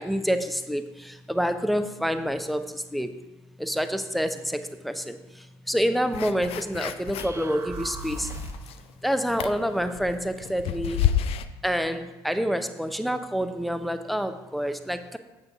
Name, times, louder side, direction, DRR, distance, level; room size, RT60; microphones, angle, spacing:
voice 1, 0.0-3.2 3.6-8.3 9.0-11.1 11.6-15.2, equal, ahead, 9 dB, 0.6 m, -28 dB
sound 1, 6.1-7.4 7.8-8.9 9.3-11.5, left 10 dB, 50° left, 0.4 m, -29 dB
sound 2, 7.2-8.8, right 2 dB, 25° right, 1.0 m, -37 dB
8.0 x 6.6 x 3.6 m, 1.1 s
figure-of-eight pair, 55°, 13 cm